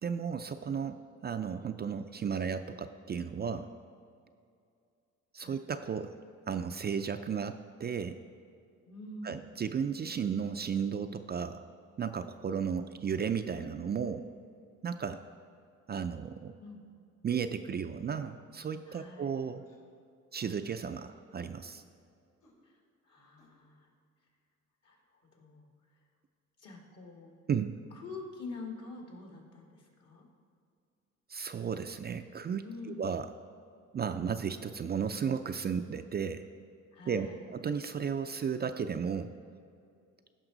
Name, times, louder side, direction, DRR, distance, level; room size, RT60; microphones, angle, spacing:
voice 1, 0.0-3.7 5.3-6.1 6.5-8.2 9.2-11.6 12.0-14.3 14.8-15.2 15.9-16.5 17.2-19.6 20.3-21.8 27.5-27.8 31.3-32.6 33.0-33.3 33.9-36.5 37.1-37.3 37.5-39.3, right 7 dB, 35° right, 8 dB, 0.4 m, -34 dB
voice 2, 8.8-9.4 16.6-16.8 18.9-19.4 22.6-23.9 24.8-26.0 26.6-27.3 27.9-30.3 32.6-33.1 36.9-37.5, left 3 dB, 55° left, 0 dB, 2.1 m, -47 dB
sound 1, 18.9-19.1 19.6-19.9 20.4-20.6 21.3-21.5 22.4-22.5 23.4-23.5, left 1 dB, 75° left, 2.7 m, -65 dB
15.0 x 5.8 x 4.0 m, 2.4 s
cardioid pair, 90°, 30 cm